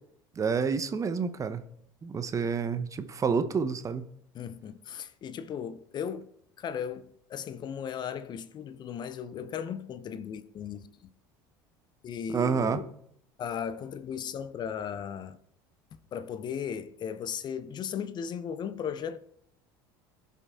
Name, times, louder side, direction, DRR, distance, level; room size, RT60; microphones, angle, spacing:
voice 1, 0.4-1.6 2.0-4.0 12.3-12.8, right 5 dB, 30° right, 0.9 m, -28 dB
voice 2, 4.3-6.3 6.6-10.9 12.0-12.9 13.4-15.4 16.1-19.2, left 7 dB, 40° left, 0.7 m, -36 dB
16.5 x 5.6 x 3.6 m
hypercardioid pair, 80°, 11 cm